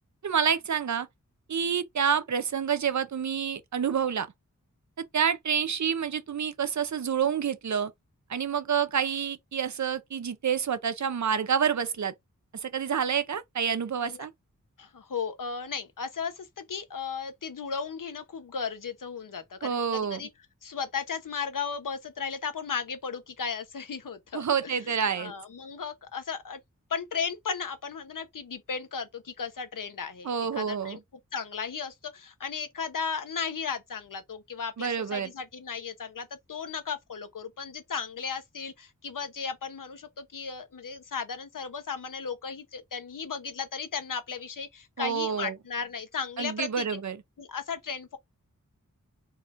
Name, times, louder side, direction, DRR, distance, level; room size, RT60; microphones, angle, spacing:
voice 1, 0.2-1.1 1.5-4.3 5.0-7.9 8.3-12.1 12.5-14.3 19.6-20.2 24.3-25.3 30.2-31.0 34.8-35.3 45.0-45.5 46.4-47.2, right 7 dB, 60° right, 0.6 m, -28 dB
voice 2, 14.8-20.3 20.6-24.7 25.2-26.6 26.9-31.0 31.3-47.0 47.4-48.2, left 6 dB, 75° left, 0.9 m, -35 dB
4.1 x 2.4 x 3.5 m
wide cardioid pair, 85°, 32 cm